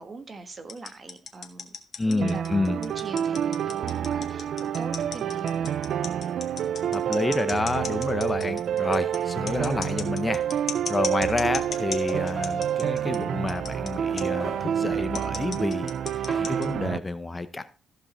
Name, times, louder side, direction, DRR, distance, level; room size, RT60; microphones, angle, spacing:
voice 1, 0.0-1.7 2.0-5.8, right 3 dB, 35° right, 1.5 m, -41 dB
sound 1, 0.7-13.2 13.5-13.9 14.2-14.3 15.0-16.8, left 6 dB, 45° left, 1.8 m, -36 dB
voice 2, 2.0-2.8 6.9-17.6, left 2 dB, 20° left, 0.7 m, -29 dB
sound 2, 2.2-17.0, right 9 dB, 65° right, 0.4 m, -28 dB
sound 3, 6.9-9.1 10.1-10.2 10.4-13.5 13.9-17.0, equal, ahead, 2.5 m, -45 dB
14.5 x 5.3 x 4.3 m
cardioid pair, 90°, 0 cm